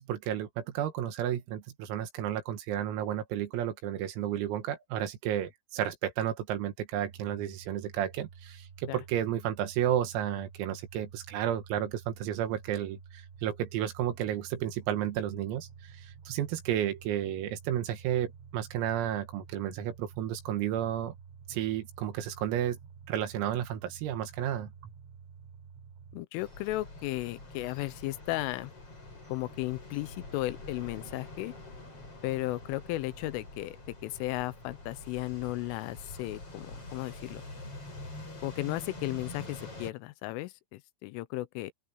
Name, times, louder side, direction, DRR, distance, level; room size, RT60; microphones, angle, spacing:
voice 1, 0.0-21.1 21.5-22.8 23.1-24.7, right 11 dB, 85° right, 4.6 m, -32 dB
sound 1, 7.0-26.2, right 6 dB, 65° right, 6.4 m, -51 dB
voice 2, 26.1-28.7 29.3-31.5 32.2-37.4 38.4-41.7, left 18 dB, 80° left, 3.1 m, -35 dB
sound 2, 26.4-39.9, left 2 dB, 25° left, 8.8 m, -46 dB
open air
omnidirectional pair, 6.0 m